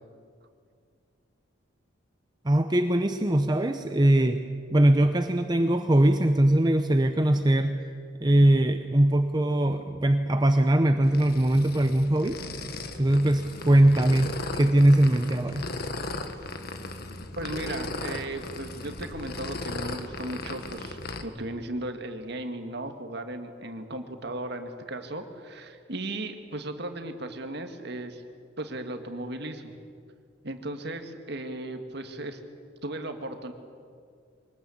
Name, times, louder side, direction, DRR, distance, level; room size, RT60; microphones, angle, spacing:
voice 1, 2.4-4.4 4.7-7.8 8.2-12.4 13.0-15.7, right 1 dB, 20° right, 7 dB, 0.8 m, -21 dB
sound 1, 11.0-21.2, left 2 dB, 55° left, 1.6 m, -37 dB
voice 2, 17.4-28.2 28.6-29.7 30.4-32.4 32.8-33.5, right 1 dB, 60° right, 6 dB, 2.0 m, -36 dB
24.0 x 19.5 x 8.7 m, 2.2 s
head